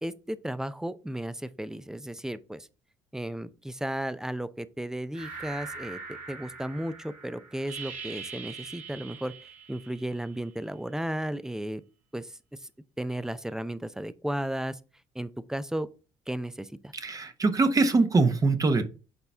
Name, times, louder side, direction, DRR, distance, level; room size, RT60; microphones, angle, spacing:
voice 1, 0.0-2.7 3.1-9.3 9.7-11.8 12.1-12.3 13.0-14.8 15.2-15.9 16.3-16.9, right 1 dB, 5° right, 0.5 m, -34 dB
sound 1, 5.1-10.6, right 4 dB, 75° right, 2.1 m, -42 dB
voice 2, 16.9-18.9, right 3 dB, 30° right, 1.0 m, -23 dB
6.8 x 4.1 x 3.4 m
supercardioid pair, 70°, 12 cm